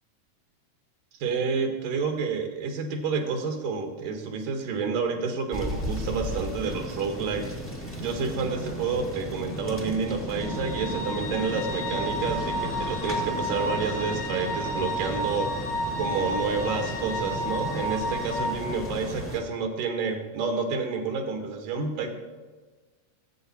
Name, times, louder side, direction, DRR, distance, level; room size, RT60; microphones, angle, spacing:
voice 1, 1.2-7.5 8.0-15.6 16.0-22.2, right 5 dB, 85° right, 4 dB, 3.1 m, -29 dB
sound 1, 5.5-19.4, left 1 dB, 10° left, 0.8 m, -35 dB
sound 2, 10.3-18.5, equal, 45° left, 3.2 m, -32 dB
19.5 x 8.2 x 4.2 m, 1.4 s
omnidirectional pair, 3.7 m